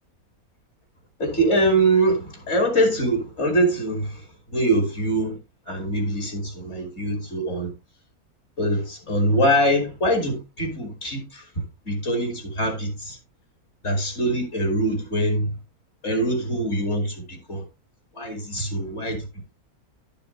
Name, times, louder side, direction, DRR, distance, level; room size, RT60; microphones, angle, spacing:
voice 1, 1.2-5.4 5.7-7.7 8.6-11.5 11.8-13.2 13.8-15.5 16.0-17.6 18.1-19.5, right 1 dB, 50° left, 2.9 m, -23 dB
11.5 x 6.9 x 3.2 m
omnidirectional pair, 1.5 m